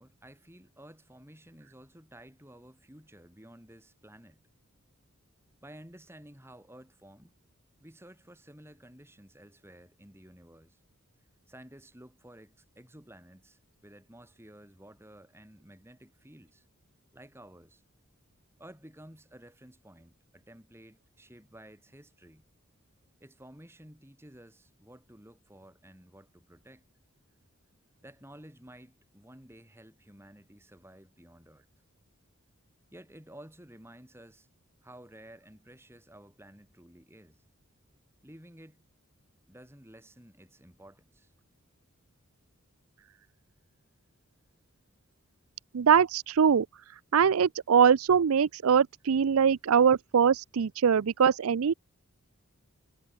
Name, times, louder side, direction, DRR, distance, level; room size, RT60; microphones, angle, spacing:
voice 1, 0.0-4.4 5.6-7.3 7.8-10.8 11.5-16.7 17.1-17.8 18.6-22.4 23.2-26.8 28.0-31.7 32.9-34.5 34.8-37.4 38.2-38.9 39.5-41.3, right 1 dB, 10° right, 5.3 m, -53 dB
voice 2, 45.7-46.7 47.1-51.7, right 7 dB, 90° right, 0.5 m, -22 dB
head